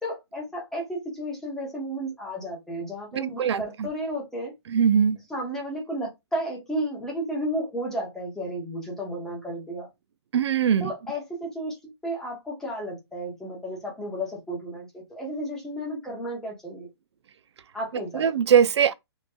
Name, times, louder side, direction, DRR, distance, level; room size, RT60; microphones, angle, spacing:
voice 1, 0.0-4.5 5.3-9.9 10.8-16.9 17.7-18.2, right 1 dB, 5° left, 0.9 m, -33 dB
voice 2, 3.4-3.9 4.7-5.2 10.3-10.9 18.1-18.9, right 8 dB, 85° right, 0.4 m, -21 dB
3.0 x 2.9 x 2.3 m
hypercardioid pair, 160°, 14 cm